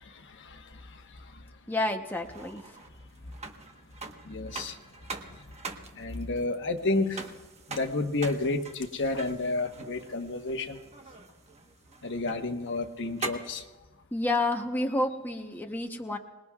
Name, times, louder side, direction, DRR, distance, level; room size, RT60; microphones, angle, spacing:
voice 1, 1.7-2.6 14.1-16.2, left 2 dB, 10° left, 2 dB, 0.9 m, -29 dB
sound 1, 2.1-13.7, right 3 dB, 30° right, 1.2 m, -44 dB
voice 2, 4.2-4.7 5.9-7.2 7.7-10.8 12.0-13.6, left 2 dB, 55° left, 5 dB, 1.2 m, -30 dB
26.0 x 20.5 x 2.4 m, 1.2 s
head